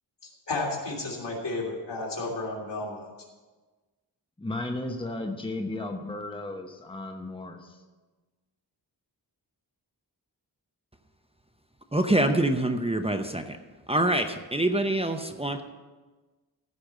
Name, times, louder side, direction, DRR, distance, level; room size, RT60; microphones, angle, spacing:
voice 1, 0.2-3.1, left 2 dB, 80° left, -2 dB, 3.0 m, -32 dB
voice 2, 4.4-7.8, left 2 dB, 10° left, 4 dB, 0.9 m, -34 dB
voice 3, 11.9-13.6 13.9-15.6, right 1 dB, 15° right, 6 dB, 0.7 m, -25 dB
15.0 x 5.1 x 8.0 m, 1.3 s
wide cardioid pair, 115°, 42 cm